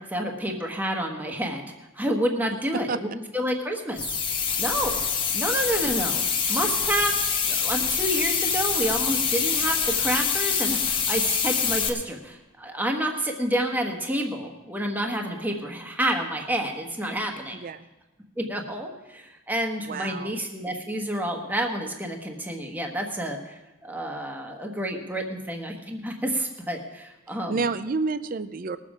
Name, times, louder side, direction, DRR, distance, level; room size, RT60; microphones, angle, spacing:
voice 1, 0.0-4.2 4.6-5.0 5.3-6.2 6.5-17.6 18.4-27.6, right 1 dB, 10° right, 1 dB, 1.1 m, -29 dB
sound 1, 4.0-11.9, left 6 dB, 25° left, 1.1 m, -25 dB
voice 2, 17.5-17.9 19.9-20.4 27.5-28.8, right 4 dB, 40° right, 13 dB, 0.4 m, -29 dB
20.0 x 7.4 x 4.9 m, 1.1 s
head